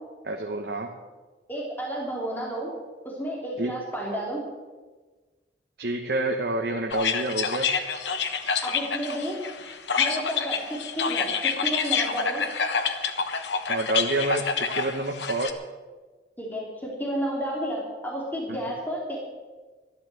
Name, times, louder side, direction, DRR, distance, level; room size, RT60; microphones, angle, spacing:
voice 1, 0.3-0.9 3.6-3.7 5.8-7.7 13.7-15.5 18.5-18.6, right 2 dB, 65° right, 2 dB, 1.2 m, -28 dB
voice 2, 1.5-2.7 3.0-4.4 8.6-9.4 9.9-12.4 16.4-19.2, right 1 dB, 10° left, -3 dB, 3.1 m, -31 dB
sound 1, 6.9-15.5, left 6 dB, 85° left, 1.2 m, -27 dB
12.5 x 11.5 x 7.7 m, 1.3 s
head